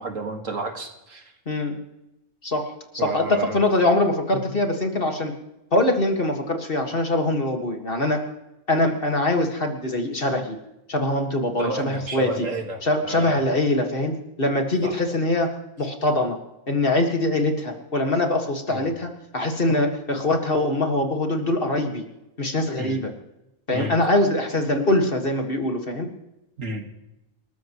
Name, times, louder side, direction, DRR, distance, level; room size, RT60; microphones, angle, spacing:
voice 1, 0.0-1.3 3.0-3.6 4.3-4.5 11.6-13.4 14.8-14.9 18.7-18.9 22.8-23.0 23.7-23.9 26.6-26.9, right 3 dB, 60° right, 4 dB, 2.2 m, -31 dB
voice 2, 1.5-1.8 2.4-5.3 5.7-8.2 8.7-10.6 10.9-12.3 12.8-15.5 15.8-16.4 16.7-22.0 22.4-23.1 23.7-26.1, left 2 dB, 40° left, 3 dB, 2.0 m, -23 dB
28.0 x 14.0 x 3.1 m, 0.93 s
omnidirectional pair, 1.5 m